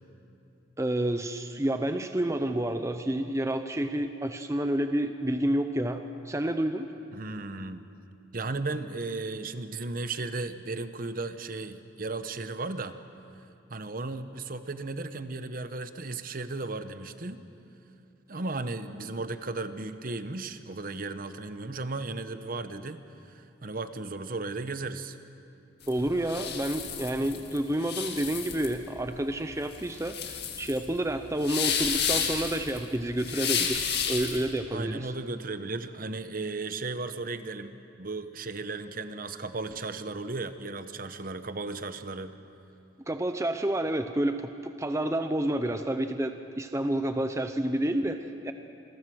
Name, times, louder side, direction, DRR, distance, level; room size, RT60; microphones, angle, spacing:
voice 1, 0.8-6.9 25.9-35.1 43.1-48.5, right 1 dB, 15° right, 8 dB, 0.7 m, -29 dB
voice 2, 7.1-7.9 8.3-12.9 13.7-17.4 18.3-25.2 34.7-42.3, right 3 dB, 45° right, 10 dB, 0.9 m, -35 dB
sound 1, 25.8-34.5, left 7 dB, 55° left, 2.3 m, -31 dB
27.5 x 22.0 x 6.3 m, 2.7 s
head